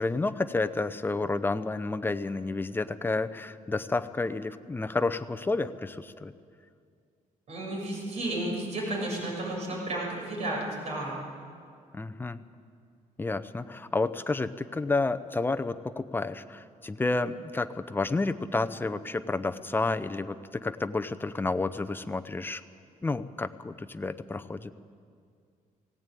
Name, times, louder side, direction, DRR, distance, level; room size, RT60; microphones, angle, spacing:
voice 1, 0.0-6.3 11.9-12.4 13.2-22.6 23.0-24.7, left 3 dB, 15° left, 10 dB, 0.7 m, -30 dB
voice 2, 7.5-11.2, right 1 dB, 50° right, -2 dB, 7.2 m, -32 dB
18.0 x 17.0 x 9.2 m, 2.3 s
cardioid pair, 125°, 14 cm